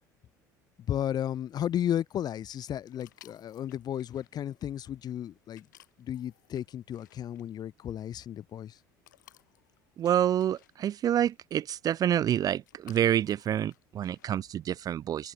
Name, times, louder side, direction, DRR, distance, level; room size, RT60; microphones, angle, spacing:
voice 1, 0.9-5.7 6.0-8.8, left 10 dB, 40° left, 1.1 m, -33 dB
sound 1, 2.9-14.5, left 13 dB, 75° left, 5.9 m, -62 dB
voice 2, 10.0-15.3, right 10 dB, 40° right, 0.5 m, -28 dB
figure-of-eight pair, 65°, 10 cm